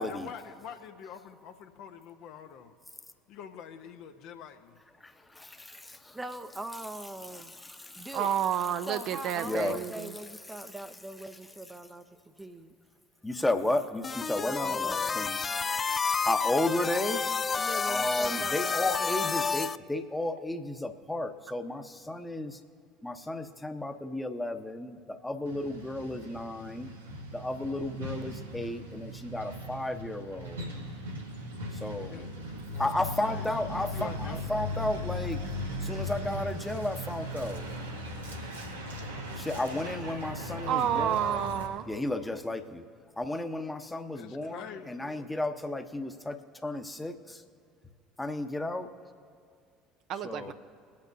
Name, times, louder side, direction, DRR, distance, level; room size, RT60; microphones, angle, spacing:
voice 1, 0.0-2.7 3.3-4.8 31.7-34.4 44.1-45.3, left 8 dB, 60° left, 6 dB, 0.8 m, -46 dB
voice 2, 5.0-6.2 7.3-8.1 9.4-9.8 13.2-15.4 16.2-17.2 17.9-22.6 23.0-26.9 27.3-30.7 31.7-32.3 32.8-35.4 35.8-37.6 39.3-41.4 41.9-42.9 43.2-47.4 48.2-48.9 50.2-50.5, left 2 dB, 10° left, 7 dB, 0.9 m, -33 dB
voice 3, 6.1-7.5 8.0-8.3 8.9-12.1 12.4-12.8 14.4-15.3 17.5-19.8 39.7-39.8, right 2 dB, 15° right, 10 dB, 0.6 m, -42 dB
voice 4, 8.1-10.2 40.7-41.9 50.1-50.5, right 9 dB, 55° right, 10 dB, 0.5 m, -30 dB
sound 1, 14.0-19.8, left 5 dB, 30° left, 0.3 m, -30 dB
Truck, 25.4-41.7, equal, 85° right, 1.2 m, -38 dB
22.0 x 8.6 x 2.7 m, 2.2 s
figure-of-eight pair, 65°, 0 cm